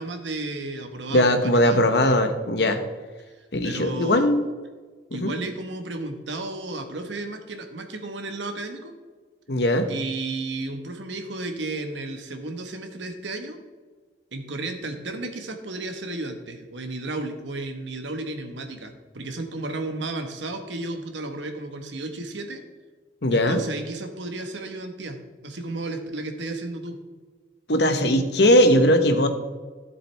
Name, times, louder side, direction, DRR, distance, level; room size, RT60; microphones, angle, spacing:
voice 1, 0.0-1.8 3.4-4.3 5.1-8.9 9.9-13.6 14.3-22.6 23.3-25.2 25.4-27.0, right 2 dB, 80° right, 6 dB, 1.4 m, -33 dB
voice 2, 1.1-2.8 3.5-4.5 5.1-5.3 9.5-9.9 23.2-23.6 27.7-29.3, left 1 dB, 65° left, 7 dB, 1.1 m, -19 dB
13.0 x 7.6 x 3.5 m, 1.4 s
head